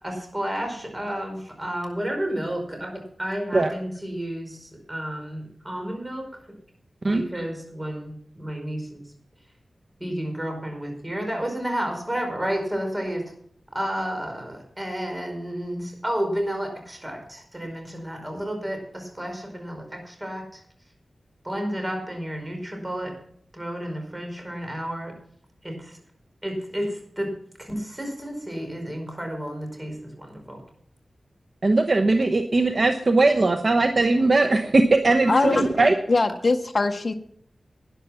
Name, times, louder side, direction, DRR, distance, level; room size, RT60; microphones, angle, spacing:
voice 1, 0.0-6.4 7.1-9.0 10.0-13.2 13.7-20.6 21.4-23.1 23.5-25.1 25.6-26.0 26.4-30.6 35.1-35.5, equal, 20° right, 3 dB, 4.9 m, -31 dB
voice 2, 31.6-35.9, right 2 dB, 50° right, 6 dB, 0.9 m, -19 dB
voice 3, 35.3-35.7 36.1-37.1, left 3 dB, 50° left, 7 dB, 0.8 m, -22 dB
12.5 x 10.0 x 5.8 m, 0.64 s
wide cardioid pair, 75°, 0 cm